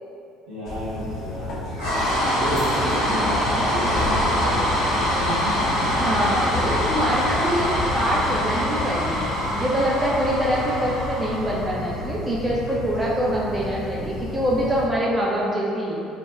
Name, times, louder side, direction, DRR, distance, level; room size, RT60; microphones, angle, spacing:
voice 1, 0.5-1.7 2.4-4.8 5.3-5.5, equal, 70° right, -10 dB, 0.8 m, -31 dB
sound 1, 0.6-14.9, left 2 dB, 55° left, 0.3 m, -32 dB
sound 2, 1.7-12.0, equal, 75° left, 0.9 m, -24 dB
voice 2, 6.0-16.1, equal, 20° right, -5 dB, 0.3 m, -24 dB
2.7 x 2.2 x 2.2 m, 2.6 s
figure-of-eight pair, 55°, 0 cm